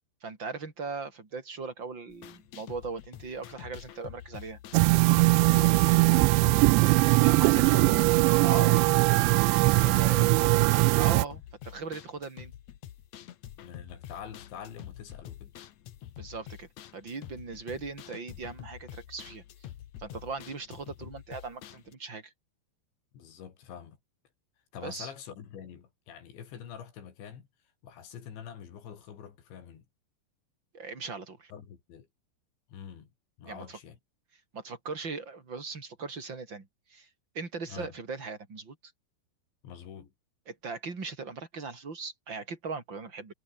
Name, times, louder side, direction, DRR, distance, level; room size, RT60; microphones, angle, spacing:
voice 1, 0.2-4.6 6.8-8.8 9.9-10.2 10.9-12.5 16.2-19.4 20.0-22.3 24.8-25.1 30.7-31.5 33.5-33.8 34.5-37.1 37.3-38.9 40.5-43.3, right 4 dB, 25° right, 4.3 m, -39 dB
sound 1, 2.1-21.9, left 11 dB, 70° left, 1.8 m, -47 dB
sound 2, 4.7-11.3, right 25 dB, 90° right, 2.8 m, -21 dB
voice 2, 5.5-5.9 7.6-8.0 9.1-9.3 9.6-10.7 13.6-15.6 23.1-24.0 24.7-27.5 27.8-29.9 31.5-32.1 32.7-33.1 33.4-34.0 37.7-37.9 39.6-40.1, left 8 dB, 85° left, 5.8 m, -45 dB
omnidirectional pair, 5.1 m